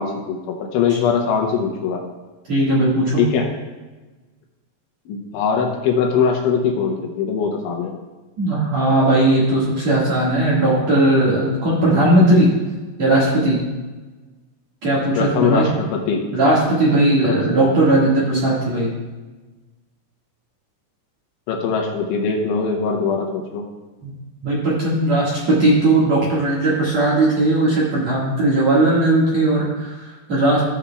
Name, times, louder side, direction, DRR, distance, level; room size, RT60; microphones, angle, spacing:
voice 1, 0.0-2.0 3.2-3.5 5.1-7.9 15.2-16.2 17.2-17.4 21.5-23.6, left 6 dB, 75° left, 1 dB, 3.1 m, -21 dB
voice 2, 2.5-3.2 8.4-12.5 13.0-13.6 14.8-15.7 16.3-18.9 24.0-24.1 24.4-30.6, right 1 dB, 55° right, -7 dB, 2.0 m, -17 dB
17.0 x 7.1 x 2.4 m, 1.2 s
omnidirectional pair, 6.0 m